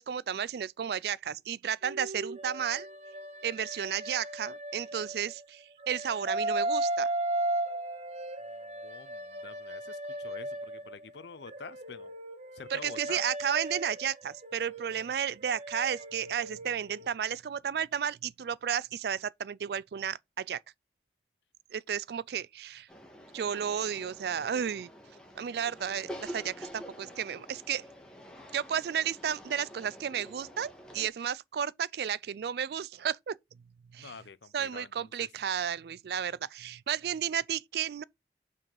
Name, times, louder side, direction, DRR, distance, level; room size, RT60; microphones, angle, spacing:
voice 1, 0.0-2.9 3.4-7.1 12.7-20.6 21.7-22.9 23.3-24.9 25.4-27.8 28.5-33.4 33.9-34.1 34.5-38.0, right 8 dB, 60° right, 0.3 m, -33 dB
sound 1, 1.8-5.4 5.8-11.0 11.5-17.1, right 1 dB, 40° right, 0.8 m, -36 dB
voice 2, 8.5-12.1 12.5-13.2 34.0-35.3, left 4 dB, 80° left, 0.7 m, -48 dB
sound 2, 22.9-31.1, equal, 5° left, 1.7 m, -47 dB
6.0 x 4.7 x 4.8 m
head